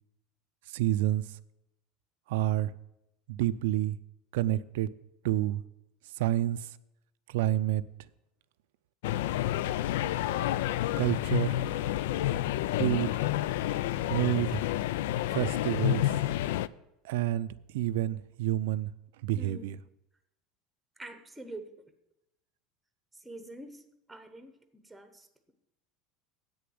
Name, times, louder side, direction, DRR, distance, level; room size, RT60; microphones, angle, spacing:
voice 1, 0.7-1.4 2.3-2.7 3.3-4.0 4.3-4.9 5.2-5.6 6.0-6.8 7.3-8.1 11.0-11.6 12.7-13.3 14.1-14.6 15.3-16.2 17.0-18.9 19.2-19.8, right 13 dB, 80° right, 0.5 m, -29 dB
sound 1, 9.0-16.7, left 13 dB, 80° left, 0.3 m, -29 dB
voice 2, 19.4-19.7 21.0-21.8 23.1-25.5, right 1 dB, 5° right, 0.9 m, -46 dB
8.6 x 6.7 x 7.8 m
supercardioid pair, 155°, 0 cm